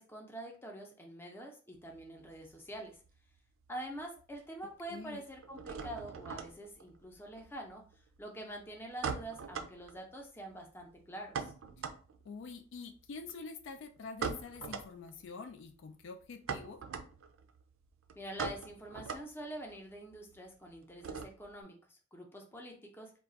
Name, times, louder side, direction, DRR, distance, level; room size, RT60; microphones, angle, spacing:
voice 1, 0.0-3.0 3.7-7.8 8.2-11.5 18.2-23.1, right 1 dB, 10° left, 2 dB, 0.6 m, -46 dB
sound 1, 1.8-3.4 3.6-4.3 4.6-21.6, right 5 dB, 80° right, 0.4 m, -43 dB
voice 2, 4.9-5.2 12.2-16.8, left 4 dB, 65° left, 7 dB, 0.3 m, -46 dB
2.4 x 2.2 x 3.8 m, 0.39 s
head